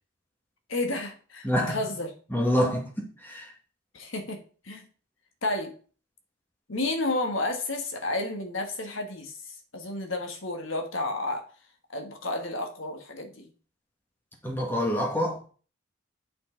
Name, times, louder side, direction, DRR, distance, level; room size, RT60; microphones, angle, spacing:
voice 1, 0.7-2.1 3.9-4.4 4.6-4.8 5.4-5.7 6.7-11.5 11.9-13.5, left 2 dB, 75° left, 1.5 m, -31 dB
voice 2, 1.4-1.8 2.3-3.5 14.4-15.4, equal, 10° left, 1.6 m, -26 dB
8.8 x 5.5 x 3.8 m
head